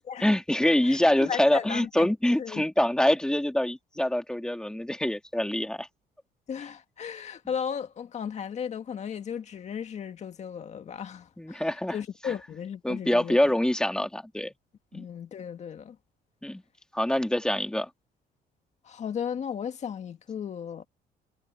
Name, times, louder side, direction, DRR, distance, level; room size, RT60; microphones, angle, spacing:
voice 1, 0.2-5.9 11.4-12.0 12.2-12.3 12.8-14.5 14.9-15.0 16.4-16.6 16.9-17.9, left 1 dB, 5° left, 2.1 m, -25 dB
voice 2, 0.8-2.1 2.4-2.6 6.5-11.6 11.9-13.6 14.9-16.0 18.8-20.8, left 7 dB, 45° left, 1.9 m, -35 dB
cardioid pair, 140°, 17 cm